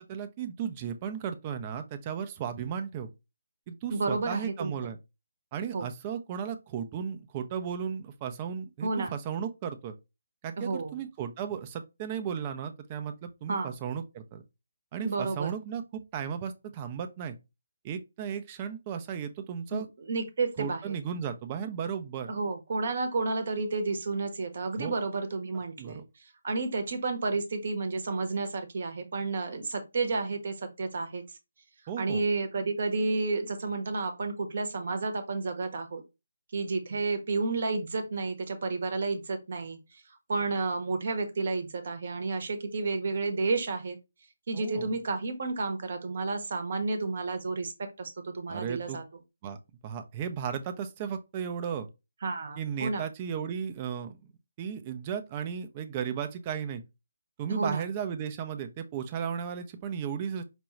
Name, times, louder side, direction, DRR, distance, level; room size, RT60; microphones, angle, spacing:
voice 1, 0.1-3.1 3.7-5.0 5.5-9.9 10.4-14.4 14.9-17.4 17.8-19.9 20.6-22.3 24.8-25.0 25.8-26.0 31.9-32.2 44.5-44.9 48.5-49.0 49.4-49.6 49.8-51.9 52.6-54.2 54.6-56.8 57.4-60.4, right 7 dB, 25° right, 0.5 m, -35 dB
voice 2, 3.9-4.7 5.7-5.9 8.8-9.1 10.6-10.9 13.5-13.7 15.0-15.5 19.7-20.9 22.3-31.2 32.0-36.0 36.5-40.0 40.3-44.0 44.5-49.0 52.2-53.1 57.5-57.9, right 3 dB, 50° right, 0.9 m, -31 dB
5.1 x 2.3 x 3.0 m
figure-of-eight pair, 150°, 0 cm